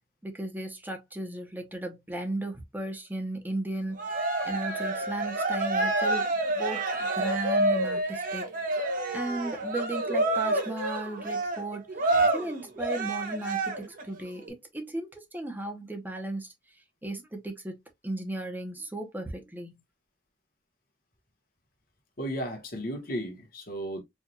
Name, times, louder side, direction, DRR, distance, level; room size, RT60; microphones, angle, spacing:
voice 1, 0.2-6.3 6.5-6.8 7.1-8.4 9.1-11.8 12.3-16.5 17.0-17.7 18.0-19.7, right 2 dB, 10° right, 0.9 m, -35 dB
Cheering, 4.0-14.0, right 2 dB, 50° right, 1.0 m, -28 dB
voice 2, 22.2-24.0, equal, 55° left, 1.3 m, -34 dB
4.7 x 2.5 x 2.7 m
head